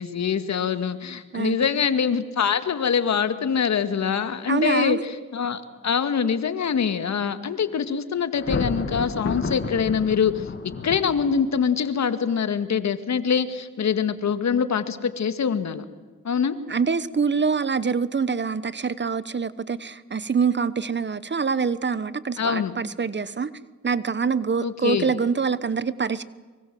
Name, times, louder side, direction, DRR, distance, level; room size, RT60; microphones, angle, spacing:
voice 1, 0.0-10.5 10.8-15.9 16.2-16.6 22.4-22.8 24.6-25.1, left 7 dB, 60° left, 2.1 m, -24 dB
voice 2, 1.3-1.7 4.5-5.0 16.7-23.5 23.8-26.2, right 5 dB, 35° right, 1.2 m, -25 dB
Thunder, 8.3-11.7, left 4 dB, 40° left, 2.8 m, -31 dB
24.5 x 23.5 x 7.8 m
cardioid pair, 65°, 32 cm